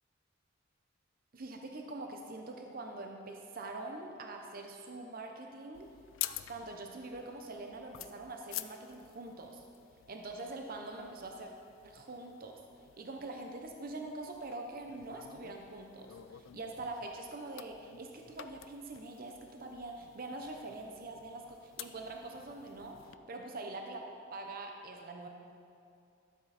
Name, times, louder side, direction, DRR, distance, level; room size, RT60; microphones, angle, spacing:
voice 1, 1.3-5.9 6.5-9.6 10.1-11.5 11.8-12.6 13.0-23.0 23.3-25.3, right 2 dB, 50° right, 3 dB, 0.7 m, -44 dB
sound 1, 5.7-23.1, left 13 dB, 75° left, 0.4 m, -49 dB
12.5 x 7.3 x 4.2 m, 2.4 s
head